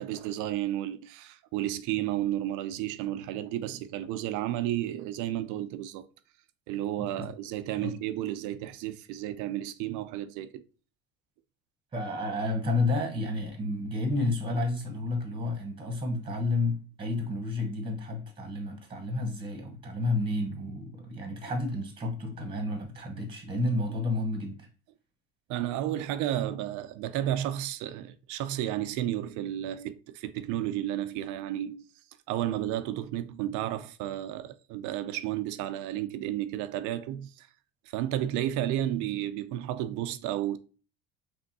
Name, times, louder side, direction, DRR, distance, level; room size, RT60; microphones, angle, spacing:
voice 1, 0.0-6.1 6.7-10.6 25.5-31.8 32.3-37.5 37.9-40.6, right 12 dB, 75° right, 0.6 m, -32 dB
voice 2, 7.0-7.3 7.8-7.9 11.9-24.7, left 2 dB, 15° right, 1.3 m, -31 dB
5.3 x 3.4 x 2.8 m
cardioid pair, 140°, 31 cm